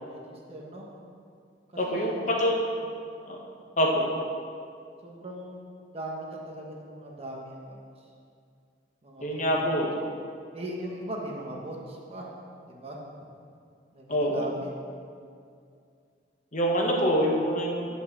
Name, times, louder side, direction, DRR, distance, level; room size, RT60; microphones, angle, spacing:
voice 1, 0.1-0.9 1.9-2.4 5.0-7.8 9.0-9.4 9.7-9.8 10.5-12.3 12.7-13.0 13.9-14.7 17.2-17.3, right 1 dB, 35° right, -2 dB, 1.5 m, -39 dB
voice 2, 1.8-2.6 3.3-3.4 3.8-4.1 9.2-9.9 14.1-14.3 16.5-17.9, equal, 45° left, -1 dB, 1.4 m, -25 dB
9.2 x 5.6 x 7.5 m, 2.3 s
head